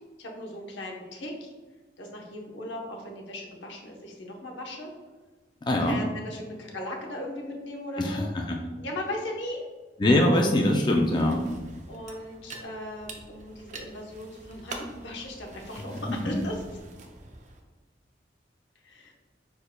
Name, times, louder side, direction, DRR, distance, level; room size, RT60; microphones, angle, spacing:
voice 1, 0.2-1.5 2.0-4.9 5.8-8.3 8.8-9.6 11.9-16.8 18.8-19.1, left 1 dB, 80° left, 0 dB, 0.9 m, -38 dB
voice 2, 5.7-6.0 8.0-8.6 10.0-11.4, left 1 dB, 25° left, 1 dB, 0.4 m, -23 dB
sound 1, 11.0-17.6, right 3 dB, 40° right, 0.5 m, -45 dB
5.0 x 4.5 x 2.2 m, 1.3 s
head